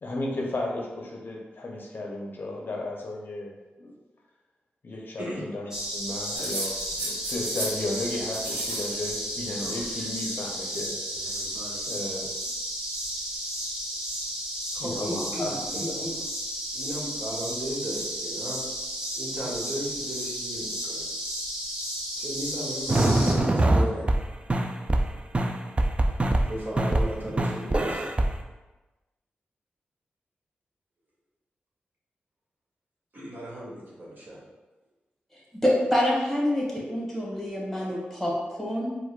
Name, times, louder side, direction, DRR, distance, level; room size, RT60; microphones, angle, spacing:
voice 1, 0.0-3.5 3.8-3.9 4.8-11.0 11.9-12.5 14.8-16.0, left 2 dB, 55° left, -1 dB, 0.6 m, -34 dB
sound 1, 5.7-23.3, equal, 10° right, 1.0 m, -33 dB
sound 2, 6.3-7.8 8.1-9.0 9.2-10.0 11.1-11.8, right 2 dB, 85° right, 0.7 m, -36 dB
voice 2, 14.7-16.1 16.7-18.7 19.2-21.0 22.2-24.1 26.4-28.0 33.1-34.4, equal, 50° right, -7 dB, 1.3 m, -35 dB
sound 3, 22.9-24.2 24.5-25.1 25.3-26.5 26.8-27.1 27.4-28.3, right 1 dB, 30° right, 0.3 m, -23 dB
voice 3, 35.6-38.9, left 1 dB, 5° left, -5 dB, 1.5 m, -26 dB
4.5 x 2.2 x 2.2 m, 1.1 s
supercardioid pair, 40°, 4 cm